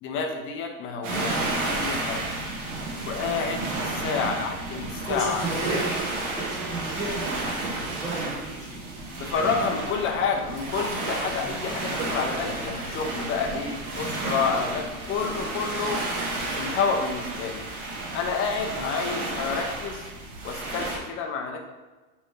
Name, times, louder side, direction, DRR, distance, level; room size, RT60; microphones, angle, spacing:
voice 1, 0.0-2.3 3.1-5.5 9.2-16.0 16.5-17.6 18.1-20.1 20.4-21.6, left 5 dB, 30° left, 3 dB, 0.4 m, -29 dB
sound 1, 1.0-21.0, right 2 dB, 60° right, 1.1 m, -32 dB
voice 2, 5.1-6.1 6.4-8.8 11.4-11.5 13.4-13.6 18.7-18.9, right 2 dB, 5° right, -8 dB, 1.3 m, -33 dB
3.3 x 2.6 x 3.0 m, 1.2 s
hypercardioid pair, 115°, 44 cm